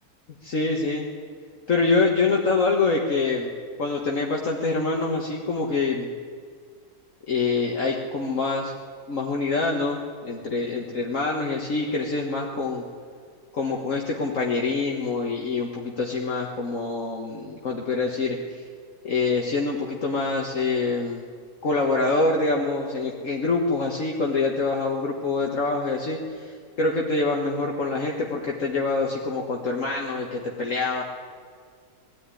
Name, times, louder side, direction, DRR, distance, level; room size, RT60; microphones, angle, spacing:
voice 1, 0.4-1.1 1.7-3.5 3.8-6.1 7.3-8.7 9.1-12.8 13.5-18.6 19.0-21.2 21.6-26.5 26.8-31.0, left 3 dB, 55° left, -1 dB, 1.9 m, -25 dB
20.0 x 13.5 x 9.8 m, 2.1 s
omnidirectional pair, 1.6 m